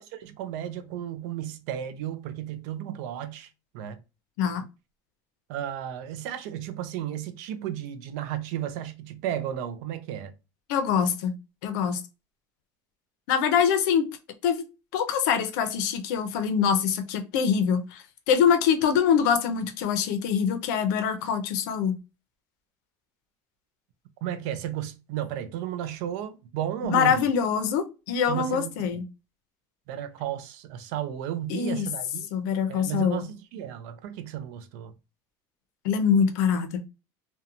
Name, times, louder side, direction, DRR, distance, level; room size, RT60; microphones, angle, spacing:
voice 1, 0.0-3.5 3.7-4.0 5.5-10.3 24.2-27.2 28.3-28.9 29.9-32.3 32.7-34.9, right 11 dB, 70° right, 0.4 m, -33 dB
voice 2, 10.7-11.4 11.6-12.0 13.3-14.1 14.4-14.6 14.9-22.0 26.8-29.0 31.5-31.9 32.3-33.3 35.8-36.8, left 7 dB, 85° left, 0.6 m, -24 dB
2.8 x 2.2 x 2.4 m
cardioid pair, 180°, 9 cm